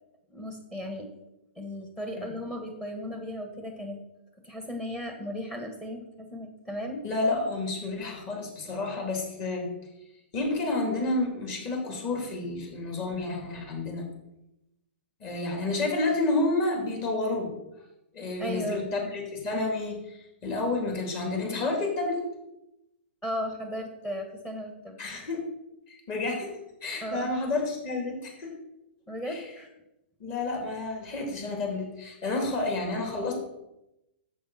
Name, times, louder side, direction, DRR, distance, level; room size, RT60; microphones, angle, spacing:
voice 1, 0.3-1.1 1.5-4.0 4.4-7.0 18.4-18.8 23.2-25.0 27.0-27.4 29.1-29.7, equal, 15° left, 4 dB, 1.5 m, -36 dB
voice 2, 7.0-9.7 10.3-14.1 15.2-17.5 18.1-22.2 25.0-25.4 25.9-26.5 26.8-28.5 29.3-29.4 30.2-33.4, left 2 dB, 35° left, 0 dB, 3.5 m, -30 dB
11.0 x 7.6 x 4.4 m, 0.90 s
hypercardioid pair, 135°, 6 cm